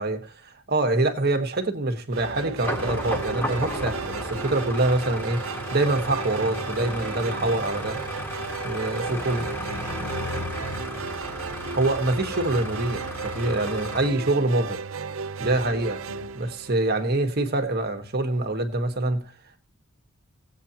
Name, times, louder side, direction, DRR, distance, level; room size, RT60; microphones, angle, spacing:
voice 1, 0.0-8.0 8.6-9.4 11.7-14.8 15.4-16.0 16.3-19.2, right 2 dB, 45° right, 1.3 m, -25 dB
sound 1, 2.1-17.4, right 5 dB, 70° right, 0.6 m, -35 dB
sound 2, 2.6-14.1, left 1 dB, 10° left, 1.6 m, -34 dB
voice 2, 8.9-10.9 14.1-14.8 16.1-16.3, left 1 dB, 75° left, 5.3 m, -42 dB
18.0 x 8.3 x 2.8 m
head